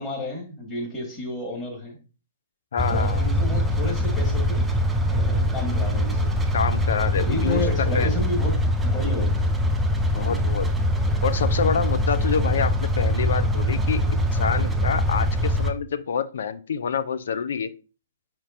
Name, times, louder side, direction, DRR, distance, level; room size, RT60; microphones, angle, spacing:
voice 1, 0.0-2.0 2.9-4.7 5.1-6.3 7.1-9.5 10.1-10.5, left 2 dB, 25° left, -2 dB, 1.8 m, -31 dB
voice 2, 2.7-3.3 6.5-8.1 10.1-10.7 11.2-17.7, left 6 dB, 65° left, 13 dB, 0.4 m, -27 dB
sound 1, 2.8-15.7, equal, 10° right, 0.5 m, -23 dB
4.4 x 4.3 x 2.5 m, 0.35 s
figure-of-eight pair, 120°, 0 cm